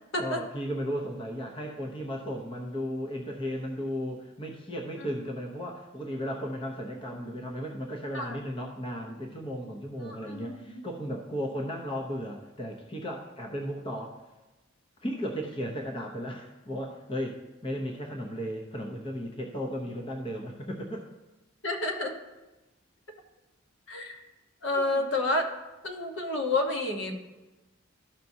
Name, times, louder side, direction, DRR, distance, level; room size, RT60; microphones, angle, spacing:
voice 1, 0.2-14.2 15.0-21.0 24.7-25.1, equal, 25° left, 1 dB, 0.7 m, -35 dB
voice 2, 10.0-10.8 21.6-22.2 23.9-24.2 24.6-25.4 25.8-27.1, left 2 dB, 60° left, 3 dB, 1.1 m, -30 dB
13.0 x 5.9 x 2.7 m, 1.1 s
head